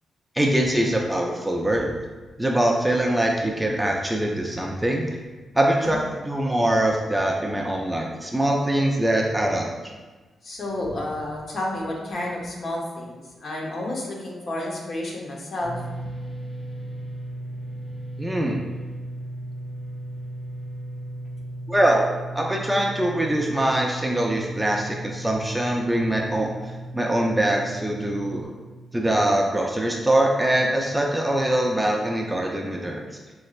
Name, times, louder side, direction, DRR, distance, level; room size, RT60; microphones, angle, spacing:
voice 1, 0.4-1.9 2.4-5.1 5.5-9.7 18.2-18.6 21.7-26.5 26.9-28.5 28.9-33.0, right 1 dB, 5° right, 0 dB, 0.4 m, -23 dB
voice 2, 10.4-15.8, left 1 dB, 50° left, -2 dB, 0.8 m, -31 dB
sound 1, 15.6-28.4, right 1 dB, 30° left, 1.2 m, -36 dB
5.0 x 3.1 x 2.4 m, 1.3 s
wide cardioid pair, 135°, 0 cm